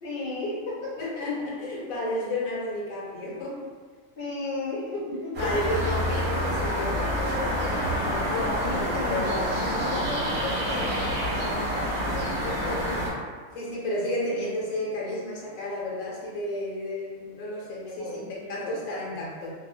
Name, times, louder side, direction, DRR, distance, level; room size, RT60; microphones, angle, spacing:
voice 1, 0.0-1.0 4.2-5.8 8.3-13.0 17.8-18.8, left 2 dB, 60° left, -6 dB, 0.6 m, -34 dB
voice 2, 1.0-3.7 5.4-8.3 8.7-9.4 9.8-10.2 12.6-12.7 13.5-19.5, left 1 dB, 85° left, -4 dB, 1.0 m, -32 dB
sound 1, 5.3-13.1, equal, 50° right, 0.9 m, -27 dB
2.6 x 2.0 x 2.5 m, 1.5 s
omnidirectional pair, 1.4 m